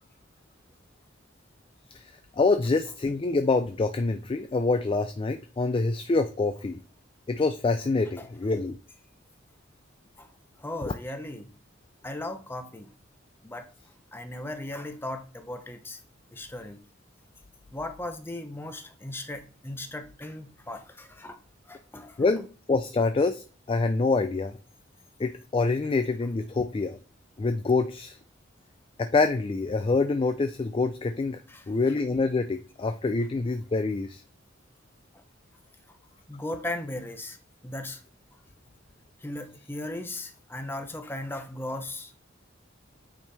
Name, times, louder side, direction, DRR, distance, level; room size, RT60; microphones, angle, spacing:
voice 1, 2.4-6.8 7.3-8.8 10.8-10.9 22.2-24.5 25.2-27.0 27.4-28.2 29.0-31.4 31.7-34.2, left 3 dB, 25° left, 0.3 m, -26 dB
voice 2, 10.6-11.5 12.0-12.9 13.4-13.7 14.1-16.0 16.3-16.8 17.7-21.4 21.7-22.2 31.5-31.7 35.1-35.2 36.3-37.4 37.6-38.0 39.2-42.2, left 1 dB, 10° left, 0.7 m, -37 dB
8.7 x 4.5 x 3.3 m
head